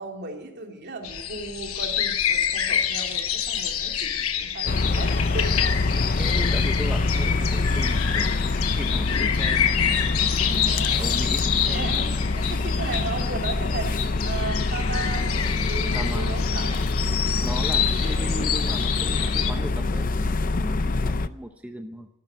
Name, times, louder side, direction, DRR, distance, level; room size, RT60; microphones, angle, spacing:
voice 1, 0.0-5.8 10.5-11.2 11.7-16.9 18.0-18.2, right 3 dB, 55° right, 2 dB, 2.9 m, -36 dB
sound 1, 1.0-19.5, left 9 dB, 85° left, 1.2 m, -27 dB
sound 2, 4.7-21.3, left 3 dB, 40° left, 0.6 m, -25 dB
voice 2, 6.2-8.3 8.7-12.0 15.9-16.4 17.2-22.1, right 1 dB, 5° right, 5 dB, 0.7 m, -37 dB
13.0 x 12.0 x 9.3 m, 0.92 s
head